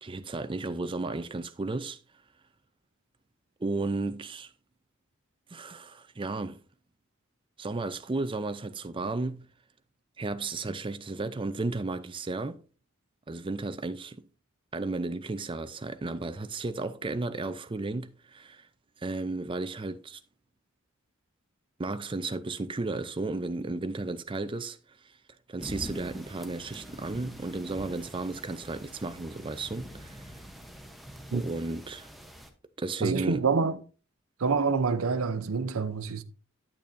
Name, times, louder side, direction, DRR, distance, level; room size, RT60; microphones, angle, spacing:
voice 1, 0.0-2.0 3.6-4.5 5.5-6.6 7.6-9.5 10.2-12.6 13.3-14.3 14.7-18.7 19.0-20.2 21.8-24.8 25.5-30.3 31.3-32.1 32.8-33.4, right 3 dB, 25° right, 0.5 m, -33 dB
sound 1, 25.6-32.5, equal, ahead, 0.9 m, -45 dB
voice 2, 33.0-33.8 34.4-36.2, right 5 dB, 80° right, 0.7 m, -27 dB
8.9 x 8.5 x 2.6 m
head